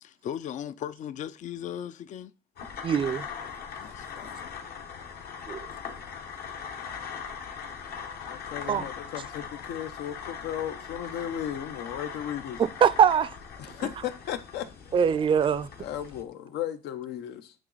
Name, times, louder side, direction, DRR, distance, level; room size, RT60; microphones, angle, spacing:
voice 1, 0.0-2.3 3.8-4.6, left 10 dB, 45° left, 0.4 m, -38 dB
sound 1, 2.6-16.2, left 6 dB, 65° left, 1.1 m, -40 dB
voice 2, 2.8-3.3 5.5-5.6 8.7-8.9 12.6-13.3 14.9-15.7, right 7 dB, 30° right, 0.4 m, -22 dB
voice 3, 8.3-12.6 13.6-14.7 15.8-17.5, left 10 dB, 80° left, 0.8 m, -35 dB
8.7 x 3.0 x 3.9 m
cardioid pair, 110°, 17 cm